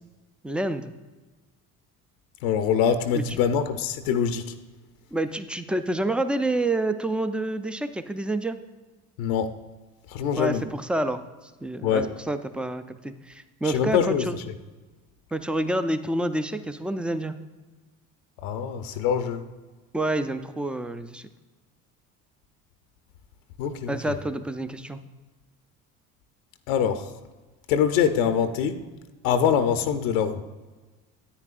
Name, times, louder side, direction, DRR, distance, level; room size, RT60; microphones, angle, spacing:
voice 1, 0.4-0.9 3.1-3.2 5.1-8.6 10.4-11.2 11.6-14.3 15.3-17.3 19.9-21.3 23.9-25.0, right 1 dB, 5° right, 10 dB, 0.4 m, -28 dB
voice 2, 2.4-4.5 9.2-9.5 10.1-10.7 11.8-12.2 13.6-14.4 18.4-19.4 23.6-24.2 26.7-27.1 27.7-28.8 29.2-30.4, left 8 dB, 75° left, 9 dB, 0.7 m, -24 dB
9.8 x 9.0 x 2.5 m, 1.3 s
hypercardioid pair, 65°, 43 cm